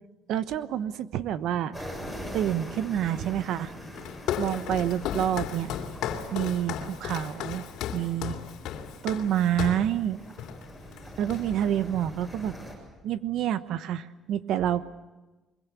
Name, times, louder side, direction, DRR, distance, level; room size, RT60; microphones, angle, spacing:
voice 1, 0.3-1.9 2.3-3.7 4.4-5.7 6.3-7.7 7.9-8.4 9.0-10.2 11.2-12.6 13.0-14.8, right 10 dB, 65° right, 13 dB, 1.1 m, -28 dB
sound 1, 1.7-12.7, equal, 10° right, 7.3 m, -44 dB
Walk footsteps, 3.9-9.9 10.4-10.6 10.9-11.7, left 9 dB, 75° left, 2.9 m, -34 dB
23.5 x 22.5 x 8.3 m, 1.1 s
cardioid pair, 140°, 0 cm